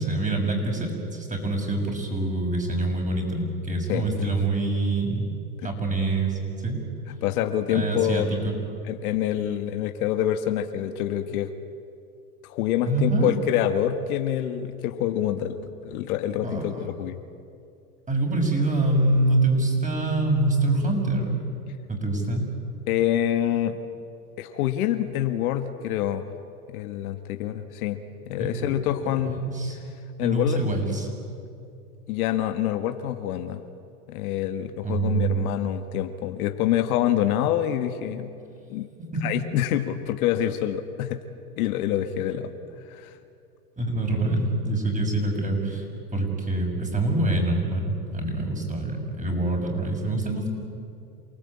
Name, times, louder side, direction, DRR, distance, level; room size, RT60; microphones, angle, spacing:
voice 1, 0.0-5.3 5.6-6.8 7.7-8.5 12.8-13.3 16.4-16.9 18.1-21.4 21.9-22.5 28.4-29.8 30.2-31.1 34.8-35.4 39.1-39.2 43.8-45.9 46.1-50.5, right 2 dB, 15° right, 1 dB, 6.4 m, -25 dB
voice 2, 3.9-4.3 5.6-5.7 7.2-8.4 8.9-11.5 12.4-15.6 15.8-17.2 22.9-23.8 24.4-26.3 26.7-28.0 28.3-29.4 30.2-30.6 32.1-33.6 34.1-38.3 38.7-38.9 39.2-41.2 41.6-42.5 42.9-43.1, left 11 dB, 70° left, 8 dB, 1.7 m, -26 dB
28.0 x 19.0 x 8.7 m, 2.5 s
hypercardioid pair, 100°, 46 cm